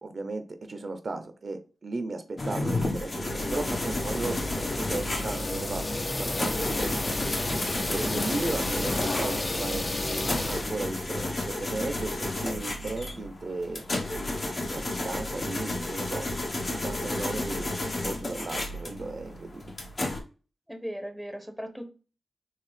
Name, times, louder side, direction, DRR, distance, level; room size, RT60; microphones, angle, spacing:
voice 1, 0.0-7.1 7.8-13.8 14.7-19.6, right 3 dB, 55° right, 8 dB, 0.7 m, -36 dB
sound 1, 2.4-20.2, left 2 dB, 50° left, 1.3 m, -32 dB
sound 2, 3.3-10.7, left 2 dB, 35° left, 0.8 m, -31 dB
voice 2, 20.7-21.9, equal, ahead, 7 dB, 0.9 m, -37 dB
4.6 x 3.1 x 3.4 m, 0.35 s
cardioid pair, 60°, 0 cm